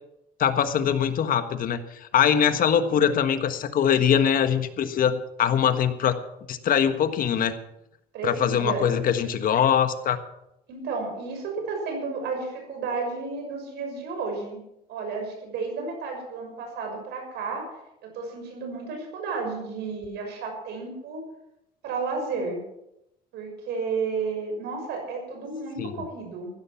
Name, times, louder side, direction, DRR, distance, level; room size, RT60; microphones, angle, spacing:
voice 1, 0.4-6.2 6.5-7.5 8.2-10.2 25.8-26.0, left 8 dB, 55° left, 10 dB, 1.5 m, -22 dB
voice 2, 8.1-8.9 10.7-14.6 14.9-17.7 18.0-21.2 21.8-22.6 23.3-26.5, right 4 dB, 80° right, 3 dB, 6.2 m, -32 dB
15.0 x 12.0 x 5.9 m, 0.84 s
cardioid pair, 110°, 17 cm